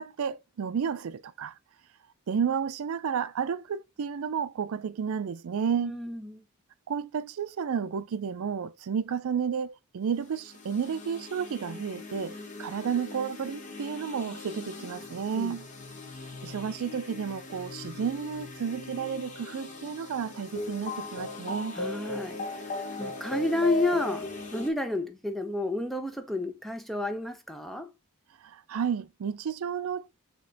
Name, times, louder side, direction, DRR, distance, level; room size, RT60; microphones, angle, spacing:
voice 1, 0.0-1.5 2.3-6.0 6.9-15.7 16.4-21.8 28.4-30.1, right 7 dB, 75° right, 0.4 m, -32 dB
voice 2, 5.8-6.4 15.3-15.5 21.7-22.4 22.7-27.9, left 2 dB, ahead, 0.5 m, -31 dB
sound 1, 10.3-24.7, left 3 dB, 35° left, 0.8 m, -39 dB
5.1 x 2.9 x 3.4 m
head